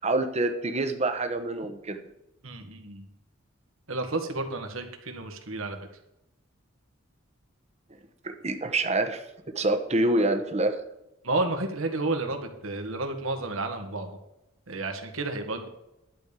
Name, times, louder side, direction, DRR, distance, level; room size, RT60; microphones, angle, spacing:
voice 1, 0.0-2.0 8.2-9.3 9.5-10.8, right 2 dB, 30° right, 7 dB, 1.0 m, -26 dB
voice 2, 2.4-3.1 3.9-5.9 11.2-14.1 14.7-15.7, right 2 dB, 75° right, 5 dB, 1.8 m, -31 dB
11.5 x 5.3 x 8.3 m, 0.87 s
head